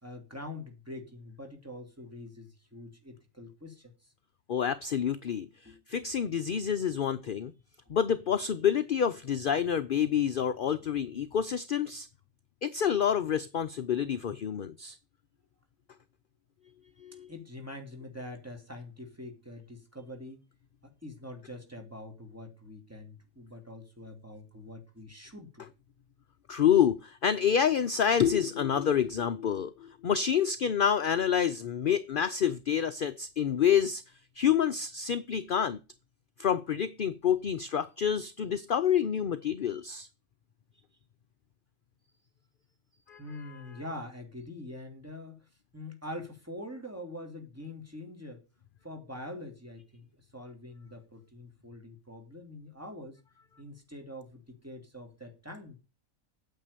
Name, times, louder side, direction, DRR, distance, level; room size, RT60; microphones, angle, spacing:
voice 1, 0.0-3.9 5.6-6.2 7.8-7.9 17.3-20.4 20.8-25.7 43.2-45.5 45.7-48.4 48.8-53.2 53.6-55.8, left 1 dB, 10° right, 2.7 m, -44 dB
voice 2, 4.5-7.5 7.9-12.1 12.6-15.0 17.0-17.3 26.5-34.0 34.4-35.8 36.4-40.1 43.1-43.2, left 8 dB, 55° left, 0.6 m, -28 dB
9.2 x 7.1 x 6.7 m
omnidirectional pair, 1.5 m